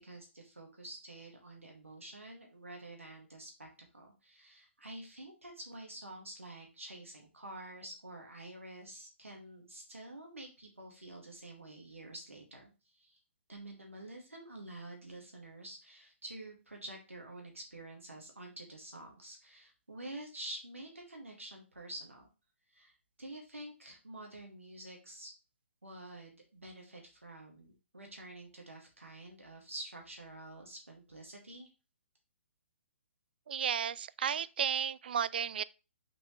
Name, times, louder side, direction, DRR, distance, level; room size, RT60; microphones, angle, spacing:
voice 1, 0.0-3.7 3.9-13.2 13.5-22.3 22.7-22.9 23.2-25.3 25.8-31.7, right 1 dB, 80° right, 1.9 m, -48 dB
voice 2, 33.5-35.6, right 8 dB, 50° right, 0.3 m, -33 dB
5.8 x 5.3 x 3.1 m
figure-of-eight pair, 130°, 7 cm